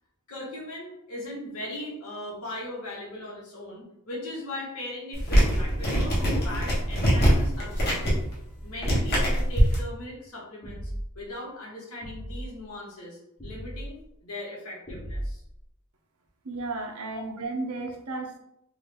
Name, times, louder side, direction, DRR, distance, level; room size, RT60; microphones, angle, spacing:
voice 1, 0.3-8.2 8.6-10.8 11.1-15.4 17.1-17.2, left 1 dB, 80° left, -4 dB, 1.4 m, -39 dB
sound 1, 5.1-9.8, equal, 50° left, 1.3 m, -23 dB
sound 2, 10.6-11.2 12.0-12.5 13.4-13.9 14.9-15.6, equal, 30° left, 0.9 m, -36 dB
voice 2, 16.4-18.4, right 3 dB, 85° right, 3 dB, 0.7 m, -33 dB
3.8 x 2.5 x 3.3 m, 0.81 s
head